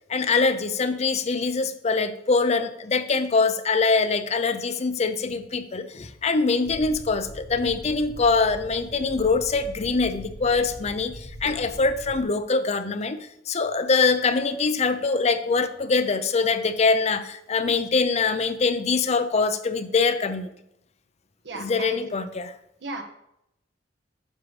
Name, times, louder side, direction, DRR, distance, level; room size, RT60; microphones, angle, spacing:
voice 1, 0.1-20.5 21.5-22.5, left 4 dB, 35° left, 10 dB, 0.5 m, -23 dB
sound 1, 6.7-12.2, equal, 50° left, 1.0 m, -41 dB
voice 2, 21.4-22.1 22.8-23.0, right 3 dB, 65° right, 3 dB, 1.2 m, -35 dB
9.7 x 6.5 x 3.2 m, 0.81 s
head